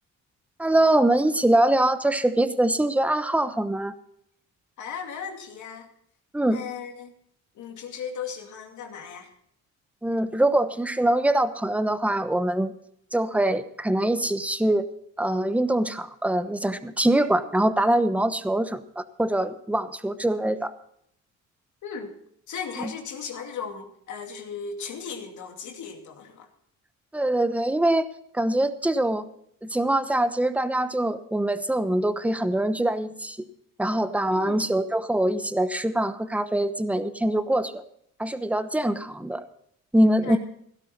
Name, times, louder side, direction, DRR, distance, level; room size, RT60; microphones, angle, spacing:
voice 1, 0.6-3.9 6.3-6.6 10.0-12.7 13.1-14.8 15.2-20.7 22.8-22.9 27.1-28.1 28.3-29.3 29.6-33.4 33.8-37.8 38.2-39.4 39.9-40.4, right 1 dB, 5° right, 11 dB, 1.0 m, -23 dB
voice 2, 4.8-5.9 6.5-7.1 7.5-9.3 21.8-22.2 22.5-26.5 34.3-34.7 40.2-40.4, left 6 dB, 75° left, 3 dB, 2.5 m, -36 dB
16.5 x 12.5 x 4.2 m, 0.70 s
cardioid pair, 90°, 30 cm